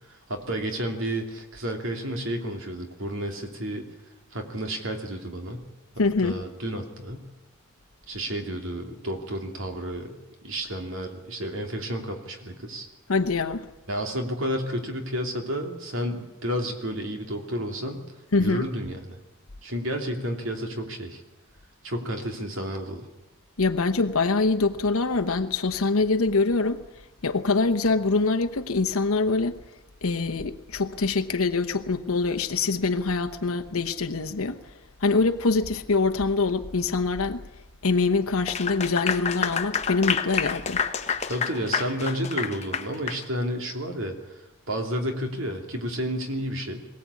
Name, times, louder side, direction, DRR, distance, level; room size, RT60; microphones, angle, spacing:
voice 1, 0.1-3.9 4.3-5.6 6.2-7.2 8.1-10.2 10.4-12.9 13.9-18.0 18.4-19.2 19.6-21.2 21.8-23.1 41.3-46.9, equal, 60° right, 2.9 m, -31 dB
voice 2, 6.0-6.4 13.1-13.7 18.3-18.6 23.6-26.8 27.2-29.6 30.0-34.6 35.0-37.4 37.8-40.8, left 3 dB, 80° left, 1.0 m, -24 dB
Clapping / Applause, 38.4-43.2, left 6 dB, 30° left, 1.0 m, -28 dB
22.0 x 17.0 x 8.5 m
head